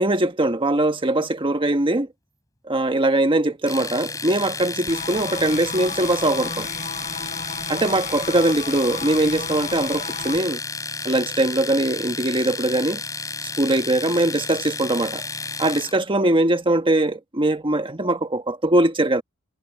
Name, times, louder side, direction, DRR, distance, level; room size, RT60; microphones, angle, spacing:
voice 1, 0.0-2.1 2.7-6.7 7.7-10.6 11.0-13.0 13.6-15.3 15.6-19.2, right 1 dB, 25° right, 1.4 m, -21 dB
Domestic sounds home sounds, 3.7-16.0, left 4 dB, 15° left, 3.4 m, -32 dB
sound 1, 4.9-10.4, left 5 dB, 30° left, 7.7 m, -34 dB
head